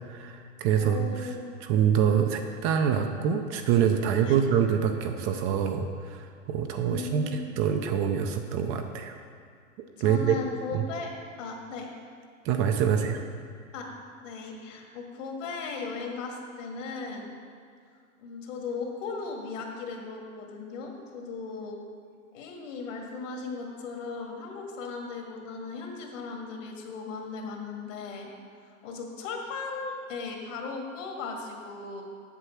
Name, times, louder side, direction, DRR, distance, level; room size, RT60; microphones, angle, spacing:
voice 1, 0.1-1.3 1.6-9.1 10.0-10.4 10.7-10.8 12.4-13.2, right 8 dB, 30° right, 5 dB, 0.5 m, -25 dB
voice 2, 0.8-1.5 4.2-4.4 6.9-7.4 10.0-11.1 11.4-11.9 12.9-13.1 13.7-13.9 14.2-17.3 18.2-21.8 22.3-28.3 28.8-32.0, left 4 dB, 65° left, 1 dB, 2.0 m, -37 dB
8.2 x 6.7 x 5.9 m, 2.2 s
hypercardioid pair, 130°, 41 cm